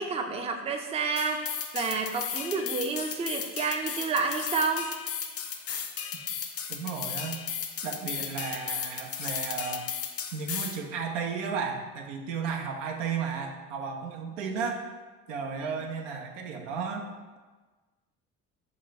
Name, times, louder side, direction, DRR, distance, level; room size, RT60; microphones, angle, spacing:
voice 1, 0.0-4.9 15.6-15.7, right 4 dB, 20° right, 4 dB, 0.4 m, -30 dB
sound 1, 1.2-10.8, left 7 dB, 40° left, 0.5 m, -35 dB
voice 2, 6.7-7.4 7.8-9.8 10.3-14.8 15.3-17.1, right 5 dB, 90° right, 2 dB, 0.5 m, -34 dB
3.8 x 2.2 x 3.9 m, 1.3 s
hypercardioid pair, 60°, 36 cm